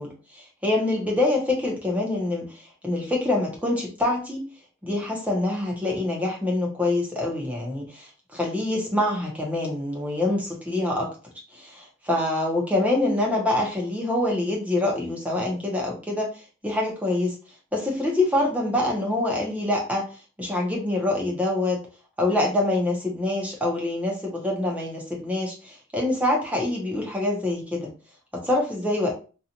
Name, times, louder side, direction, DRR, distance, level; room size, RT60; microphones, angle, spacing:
voice 1, 0.0-2.4 2.8-4.4 4.8-11.1 11.5-16.3 16.6-17.3 17.7-20.0 20.4-21.8 22.2-27.9 28.3-29.1, left 2 dB, 10° right, -2 dB, 0.7 m, -25 dB
2.6 x 2.3 x 2.8 m, 0.36 s
head